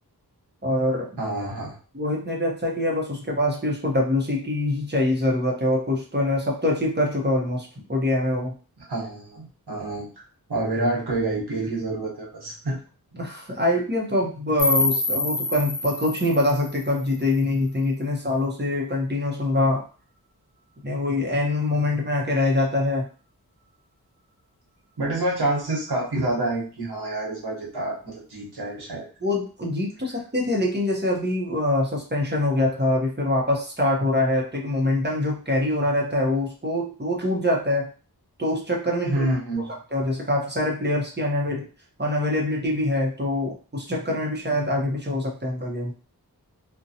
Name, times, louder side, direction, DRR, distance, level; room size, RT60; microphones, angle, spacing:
voice 1, 0.6-1.1 1.9-8.5 13.1-19.8 20.8-23.1 29.2-37.9 38.4-39.3 39.6-41.7 42.0-45.9, left 1 dB, 25° right, -2 dB, 0.7 m, -24 dB
voice 2, 1.2-1.8 8.9-10.2 10.5-12.8 25.0-29.1 39.0-39.7, right 2 dB, 85° right, -3 dB, 1.0 m, -27 dB
sound 1, 14.6-17.6, left 2 dB, 50° left, 1.0 m, -27 dB
2.6 x 2.2 x 2.7 m, 0.37 s
wide cardioid pair, 45°, 38 cm